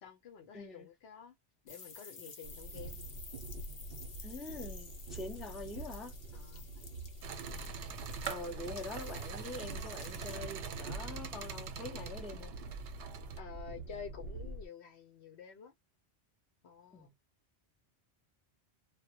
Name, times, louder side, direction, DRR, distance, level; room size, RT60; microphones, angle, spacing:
voice 1, 0.0-1.3 1.6-3.0 6.3-6.6 13.4-15.7 16.6-17.1, left 7 dB, 75° left, 1.0 m, -50 dB
voice 2, 0.5-0.9 4.2-6.1 8.3-12.5 16.9-17.1, left 2 dB, ahead, 0.5 m, -44 dB
sound 1, 1.7-10.4, left 4 dB, 50° left, 0.8 m, -53 dB
Train, 2.4-14.7, right 2 dB, 55° right, 0.6 m, -46 dB
sound 2, 7.2-13.4, right 7 dB, 80° right, 0.9 m, -44 dB
2.2 x 2.1 x 2.7 m
omnidirectional pair, 1.1 m